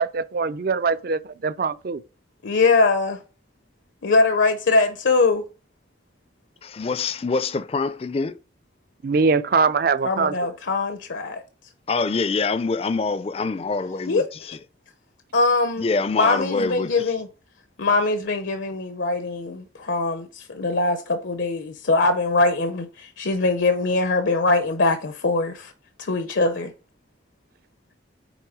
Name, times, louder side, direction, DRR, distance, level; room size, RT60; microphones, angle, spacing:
voice 1, 0.0-2.0 9.0-10.5, right 4 dB, 50° right, 0.4 m, -22 dB
voice 2, 2.4-3.2 4.0-5.5 10.0-11.4 14.1-14.2 15.3-15.9 16.2-17.3 17.8-25.7 26.0-26.7, left 3 dB, 80° left, 0.7 m, -22 dB
voice 3, 6.6-8.4 11.9-14.6 15.8-17.1, left 4 dB, 30° left, 0.4 m, -25 dB
9.1 x 3.4 x 4.8 m
head